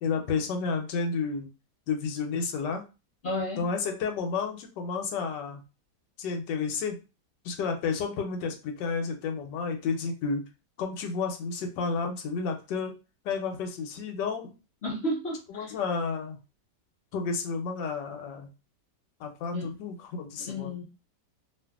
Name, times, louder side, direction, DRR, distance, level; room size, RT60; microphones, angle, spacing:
voice 1, 0.0-1.5 1.9-2.8 3.6-5.6 6.2-7.0 7.4-10.4 10.8-12.9 13.2-14.5 15.5-16.4 17.1-18.5 19.2-20.8, left 5 dB, 85° left, 4 dB, 1.3 m, -31 dB
voice 2, 3.2-3.6 14.8-15.7 19.5-19.7 20.4-20.8, left 1 dB, 60° left, -5 dB, 0.7 m, -32 dB
2.7 x 2.5 x 2.3 m, 0.30 s
omnidirectional pair, 1.9 m